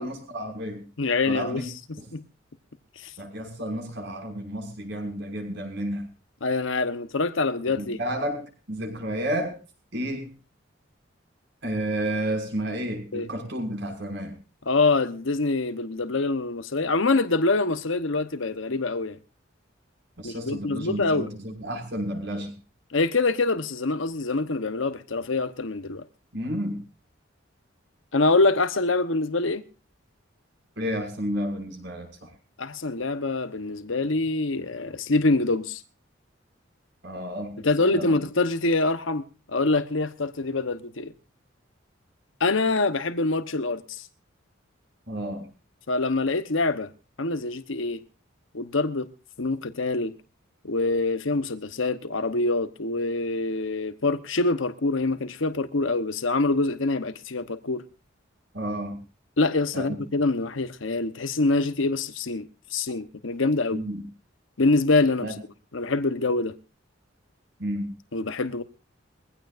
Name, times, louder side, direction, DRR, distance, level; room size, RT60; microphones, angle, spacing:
voice 1, 0.0-0.8 1.2-1.7 2.0-2.1 3.2-6.0 7.8-8.4 8.7-9.5 9.9-10.3 11.6-14.3 20.2-22.5 26.3-26.8 30.8-32.3 37.0-38.1 45.1-45.4 58.5-59.0 59.7-60.0 63.7-64.0 65.2-65.3 67.6-67.9, right 1 dB, 60° right, 6.0 m, -31 dB
voice 2, 1.0-2.2 3.0-3.1 6.4-8.0 13.1-13.3 14.6-19.2 20.2-21.3 22.9-26.0 28.1-29.6 32.6-35.8 37.6-41.1 42.4-44.1 45.9-46.9 47.2-48.0 48.5-49.1 49.4-50.1 50.6-57.8 59.4-63.8 64.6-65.3 65.7-66.5 68.1-68.6, left 3 dB, 80° left, 1.1 m, -25 dB
22.5 x 16.0 x 2.6 m
head